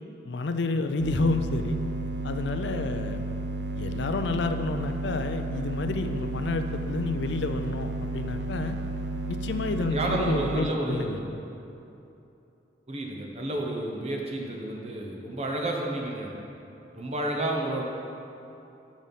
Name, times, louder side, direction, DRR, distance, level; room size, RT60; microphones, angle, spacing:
voice 1, 0.2-1.8 2.2-3.2 3.7-8.8 9.3-11.2, left 3 dB, 75° left, 8 dB, 0.5 m, -30 dB
sound 1, 1.0-10.6, right 1 dB, 65° right, 0.6 m, -32 dB
voice 2, 9.8-11.3 12.9-16.3 16.9-17.8, right 1 dB, 35° right, 0 dB, 1.0 m, -30 dB
10.0 x 6.1 x 4.1 m, 2.8 s
head